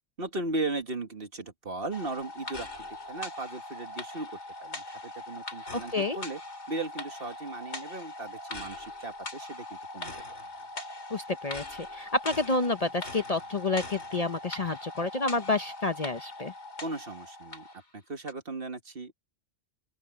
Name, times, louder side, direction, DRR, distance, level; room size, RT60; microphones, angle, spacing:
voice 1, 0.2-4.3 4.6-6.4 6.7-10.2 16.8-17.7 17.9-19.1, right 2 dB, 55° right, 2.0 m, -37 dB
sound 1, 1.9-17.8 18.3-18.4, left 2 dB, 75° left, 3.0 m, -41 dB
voice 2, 5.7-6.2 11.1-16.5, left 3 dB, 35° left, 0.9 m, -29 dB
open air
omnidirectional pair, 1.2 m